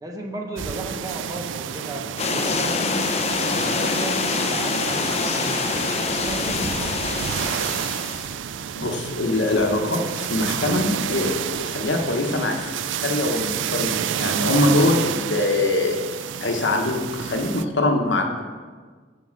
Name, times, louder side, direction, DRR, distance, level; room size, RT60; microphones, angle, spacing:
voice 1, 0.0-2.9 3.5-7.2, right 1 dB, 20° right, 1 dB, 1.2 m, -35 dB
sound 1, 0.6-17.6, right 8 dB, 90° right, 0.4 m, -30 dB
sound 2, 2.2-8.3, left 4 dB, 35° left, 0.7 m, -25 dB
voice 2, 8.8-16.0 16.4-18.4, left 2 dB, 75° left, 3 dB, 1.1 m, -23 dB
7.3 x 6.9 x 6.5 m, 1.5 s
head